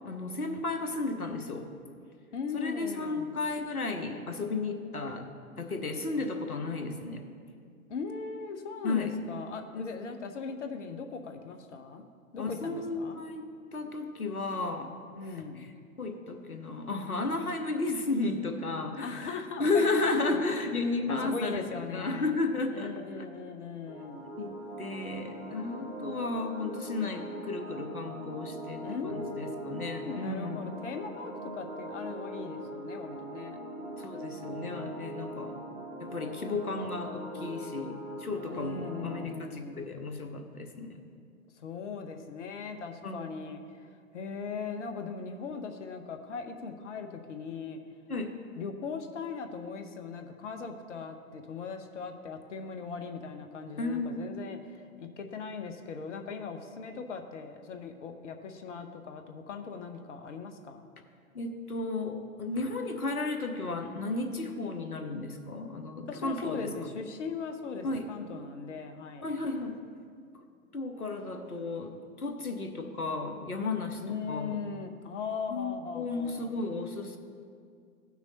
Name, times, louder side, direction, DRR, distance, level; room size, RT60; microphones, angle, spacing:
voice 1, 0.0-1.7 2.5-5.3 5.6-7.2 8.8-9.1 9.7-9.8 12.4-13.4 13.7-14.9 16.0-21.6 21.9-23.3 24.4-30.6 34.0-35.6 36.0-41.0 43.0-43.3 48.1-48.3 53.8-54.2 61.3-66.7 67.8-68.0 69.2-69.8 70.7-74.6 75.5-77.2, left 3 dB, 85° left, 5 dB, 1.0 m, -33 dB
voice 2, 2.3-3.4 7.9-12.0 12.3-13.2 15.1-15.7 19.0-20.5 21.1-22.4 22.7-24.3 28.8-33.6 38.5-39.8 41.6-47.8 48.6-60.9 66.1-69.4 74.0-76.5, left 5 dB, 55° left, 6 dB, 0.9 m, -39 dB
sound 1, 23.9-39.3, right 1 dB, 15° right, 0.4 m, -41 dB
16.0 x 6.1 x 2.8 m, 2.2 s
figure-of-eight pair, 110°, 43 cm